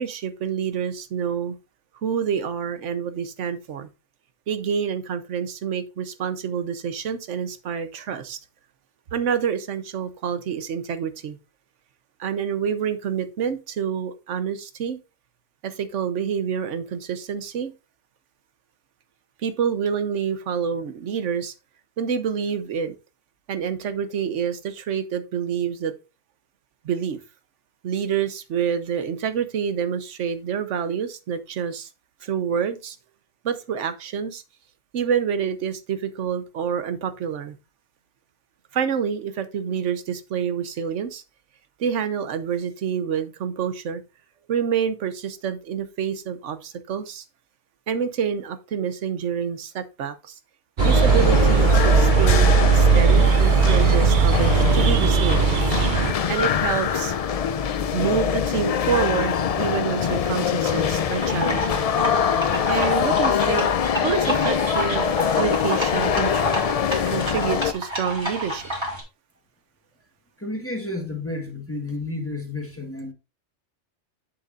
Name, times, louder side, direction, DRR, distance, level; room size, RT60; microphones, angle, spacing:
voice 1, 0.0-1.5 2.0-3.9 4.5-8.4 9.1-11.4 12.2-15.0 15.6-17.7 19.4-21.5 22.0-22.9 23.5-25.9 26.8-27.2 27.8-31.9 32.2-33.0 33.4-34.4 34.9-37.6 38.7-41.2 41.8-44.0 44.5-47.2 47.9-50.3 50.8-55.5 56.3-57.2 57.9-61.9 62.7-65.1 65.3-66.5 67.1-68.6, right 7 dB, 85° right, 1.2 m, -27 dB
sound 1, 50.8-67.7, left 7 dB, 70° left, 0.3 m, -23 dB
sound 2, 50.8-56.1, right 6 dB, 55° right, 0.6 m, -18 dB
sound 3, 61.1-69.0, equal, 25° right, 2.3 m, -30 dB
voice 2, 70.4-73.1, left 2 dB, 10° left, 1.2 m, -31 dB
7.9 x 7.0 x 2.4 m
omnidirectional pair, 1.2 m